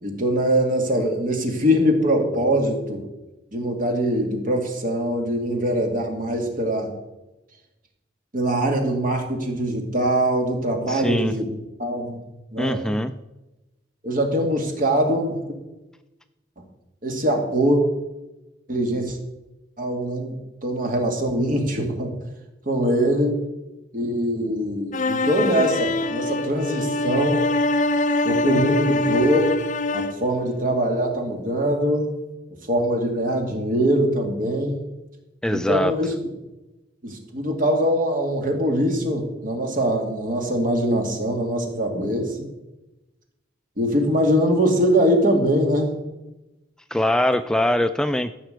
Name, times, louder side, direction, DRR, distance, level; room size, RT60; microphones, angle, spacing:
voice 1, 0.0-3.0 3.5-6.9 8.3-11.5 11.8-12.2 12.5-12.9 14.0-15.4 17.0-17.8 18.7-19.2 19.8-20.4 20.6-22.1 22.7-23.4 23.9-27.5 28.2-29.6 29.9-32.1 32.7-34.8 35.5-36.1 37.0-42.5 43.8-46.0, equal, 50° right, 2 dB, 2.5 m, -22 dB
voice 2, 10.9-11.3 12.6-13.1 35.4-35.9 46.9-48.3, left 1 dB, 5° left, 9 dB, 0.3 m, -22 dB
sound 1, 24.9-30.3, left 2 dB, 45° left, 0.7 m, -23 dB
14.5 x 5.9 x 7.9 m, 1.0 s
head